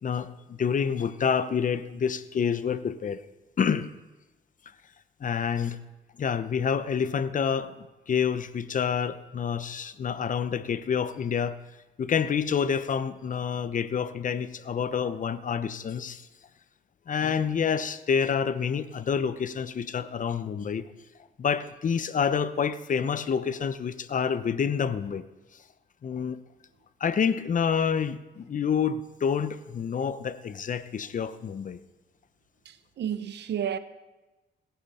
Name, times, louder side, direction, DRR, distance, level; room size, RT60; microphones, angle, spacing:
voice 1, 0.0-3.2 3.6-3.9 5.2-5.8 6.2-11.6 12.0-16.3 17.1-20.8 21.4-25.2 26.0-26.4 27.0-31.8, left 7 dB, 40° left, 0.8 m, -28 dB
voice 2, 32.7-33.8, right 9 dB, 60° right, 0.8 m, -31 dB
17.5 x 11.0 x 4.3 m
cardioid pair, 90°, 20 cm